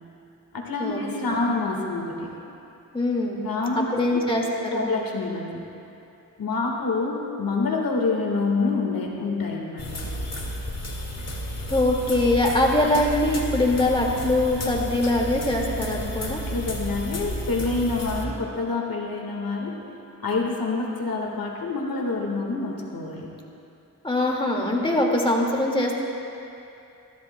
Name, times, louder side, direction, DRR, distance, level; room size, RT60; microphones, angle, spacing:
voice 1, 0.5-2.3 3.4-4.3 4.7-5.6 6.4-10.0 16.4-19.8 20.2-23.3, left 3 dB, 70° left, 0 dB, 1.6 m, -27 dB
voice 2, 2.9-3.4 3.8-4.9 11.7-16.4 24.0-25.9, left 1 dB, 15° left, -2 dB, 2.0 m, -23 dB
sound 1, 9.8-18.2, equal, 45° left, 1.8 m, -32 dB
22.0 x 14.0 x 2.2 m, 2.7 s
cardioid pair, 70°, 36 cm